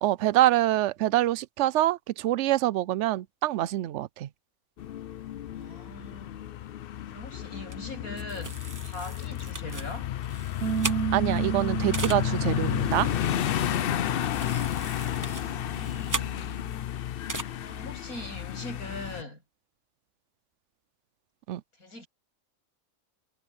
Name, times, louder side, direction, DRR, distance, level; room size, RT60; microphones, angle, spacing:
voice 1, 0.0-4.3 11.1-13.1 21.5-21.6, right 14 dB, 65° right, 0.8 m, -25 dB
sound 1, 4.8-19.2, left 11 dB, 65° left, 0.5 m, -32 dB
voice 2, 5.5-6.4 7.1-10.1 15.3-15.6 17.4-19.4 21.8-22.1, left 1 dB, 85° left, 8.5 m, -42 dB
sound 2, 7.7-7.8 8.2-11.4 11.9-12.2 13.7-13.8 14.2-16.8 17.3-17.4, right 3 dB, 20° right, 0.6 m, -37 dB
Bass guitar, 10.6-16.8, right 10 dB, 90° right, 2.9 m, -35 dB
omnidirectional pair, 1.5 m